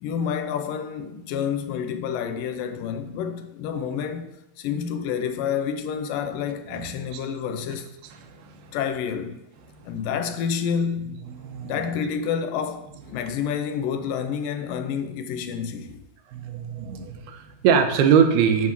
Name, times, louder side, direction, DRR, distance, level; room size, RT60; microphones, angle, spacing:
voice 1, 0.0-8.0 8.7-9.4 9.9-11.2 11.6-16.0, left 7 dB, 75° left, 2.2 m, -29 dB
voice 2, 6.7-7.2 8.3-8.7 11.3-11.8 16.3-18.7, right 7 dB, 85° right, 3.0 m, -23 dB
8.2 x 6.2 x 7.3 m
omnidirectional pair, 4.4 m